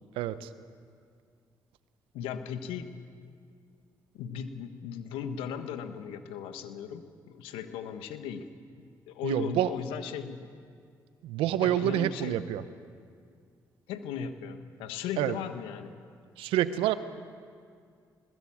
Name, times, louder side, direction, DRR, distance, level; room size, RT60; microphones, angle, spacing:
voice 1, 0.2-0.5 9.2-9.7 11.2-12.6 15.2-15.3 16.4-17.0, right 13 dB, 80° right, 13 dB, 0.9 m, -27 dB
voice 2, 2.1-2.9 4.1-8.5 8.8-10.5 11.6-12.4 13.9-15.9, left 7 dB, 85° left, 9 dB, 1.4 m, -37 dB
21.0 x 20.5 x 8.8 m, 2.2 s
hypercardioid pair, 50°, 9 cm